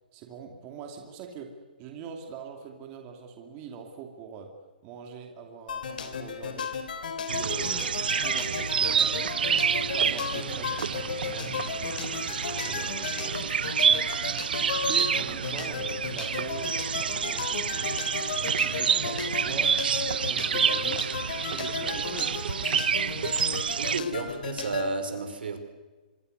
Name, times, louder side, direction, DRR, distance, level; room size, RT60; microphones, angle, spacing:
voice 1, 0.1-1.5 1.8-4.5 4.8-6.7 7.3-7.9 8.2-9.3 9.7-13.4 14.9-17.9 18.4-19.7 20.1-21.0 21.4-22.4, right 6 dB, 20° right, 3 dB, 2.6 m, -42 dB
sound 1, 5.7-24.9, left 6 dB, 60° left, 3.5 m, -35 dB
sound 2, 7.3-24.0, right 7 dB, 70° right, 0.7 m, -28 dB
voice 2, 23.8-25.6, right 3 dB, 90° right, 7 dB, 5.1 m, -32 dB
24.5 x 23.5 x 6.7 m, 1.3 s
hypercardioid pair, 170°, 5 cm